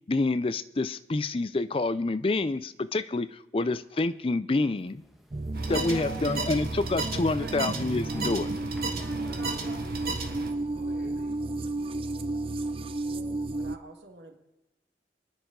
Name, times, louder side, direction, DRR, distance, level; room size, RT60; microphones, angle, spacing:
voice 1, 0.1-5.0 5.7-8.5, left 2 dB, 30° left, 14 dB, 0.4 m, -28 dB
sound 1, 4.7-10.1, equal, ahead, 1.3 m, -50 dB
sound 2, 5.3-13.8, right 2 dB, 30° right, 0.5 m, -33 dB
sound 3, 5.5-10.5, right 3 dB, 55° right, 1.8 m, -35 dB
voice 2, 5.7-6.4 9.2-9.8 10.7-11.3, equal, 75° left, -5 dB, 7.0 m, -42 dB
voice 3, 7.1-7.6 13.0-14.4, right 4 dB, 85° right, 3 dB, 1.7 m, -47 dB
30.0 x 10.5 x 3.8 m, 0.98 s
head